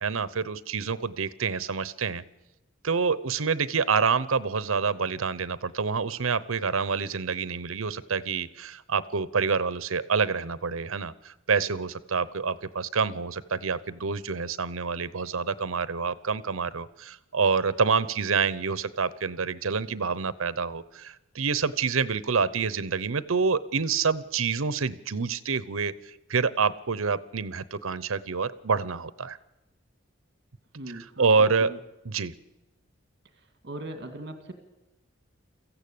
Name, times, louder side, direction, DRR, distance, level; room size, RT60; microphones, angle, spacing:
voice 1, 0.0-2.2 2.8-25.9 26.3-29.4 30.9-31.7 32.0-32.3, right 5 dB, 85° right, 17 dB, 0.8 m, -27 dB
voice 2, 30.7-31.3 31.6-31.8 33.6-34.5, right 1 dB, 55° right, 7 dB, 2.1 m, -39 dB
23.0 x 15.0 x 8.6 m, 1.0 s
head